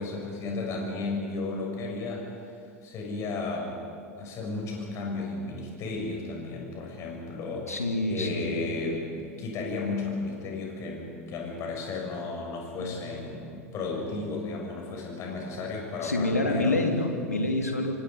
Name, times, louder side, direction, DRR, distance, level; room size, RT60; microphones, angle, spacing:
voice 1, 0.0-2.5 2.8-3.8 4.2-7.7 8.1-16.8, left 3 dB, 35° left, -1 dB, 7.4 m, -34 dB
voice 2, 7.7-8.6 12.8-13.1 16.0-18.0, left 2 dB, 80° left, 3 dB, 2.8 m, -27 dB
27.5 x 24.5 x 5.5 m, 2.4 s
figure-of-eight pair, 85°, 8 cm